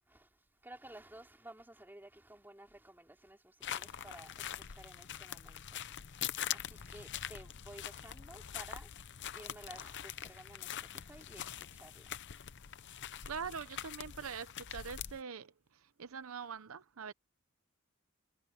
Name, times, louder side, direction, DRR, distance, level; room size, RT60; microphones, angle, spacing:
voice 1, 0.6-5.8 6.5-8.9 9.3-11.5 11.7-12.1, right 1 dB, 10° right, 3.5 m, -54 dB
sound 1, 3.6-15.2, left 10 dB, 55° left, 0.7 m, -43 dB
voice 2, 13.2-17.1, right 6 dB, 80° right, 0.7 m, -44 dB
head